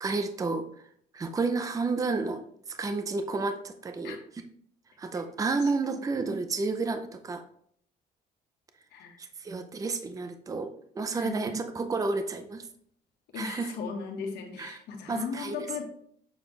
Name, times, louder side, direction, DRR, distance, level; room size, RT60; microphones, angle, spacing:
voice 1, 0.0-0.9 1.1-4.4 5.0-7.4 9.2-12.7 13.3-13.7 14.6-14.8 15.1-15.7, right 3 dB, 20° right, 7 dB, 0.6 m, -31 dB
voice 2, 11.1-11.5 13.3-15.8, left 5 dB, 75° left, 3 dB, 1.4 m, -36 dB
7.1 x 4.3 x 3.2 m, 0.64 s
cardioid pair, 110°, 17 cm